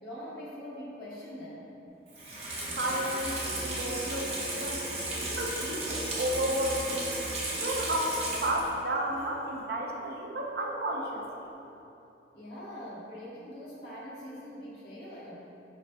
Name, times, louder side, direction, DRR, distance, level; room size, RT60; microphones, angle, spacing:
voice 1, 0.0-1.7 12.3-15.3, equal, 65° left, -8 dB, 1.1 m, -43 dB
Water tap faucet / Sink (filling or washing), 2.1-8.8 9.2-9.3, right 1 dB, 35° right, 0.9 m, -34 dB
voice 2, 2.8-4.8 5.2-7.1 7.5-11.5, right 1 dB, 60° right, -1 dB, 0.5 m, -32 dB
5.3 x 3.1 x 2.5 m, 3.0 s
head